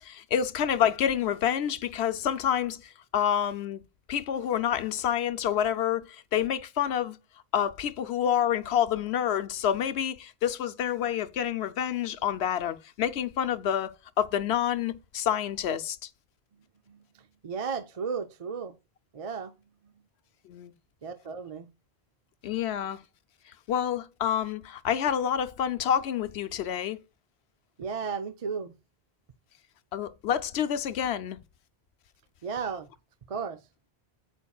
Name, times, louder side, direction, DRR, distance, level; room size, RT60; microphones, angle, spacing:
voice 1, 0.0-3.8 4.1-7.2 7.5-13.9 14.2-16.1 20.4-20.7 22.4-23.0 23.7-27.0 29.9-31.4, left 9 dB, 85° left, 0.9 m, -28 dB
voice 2, 16.9-18.8 19.1-19.5 21.0-21.7 27.8-28.7 32.4-32.9 33.3-33.7, right 6 dB, 45° right, 0.5 m, -34 dB
11.0 x 8.4 x 2.3 m
omnidirectional pair, 1.1 m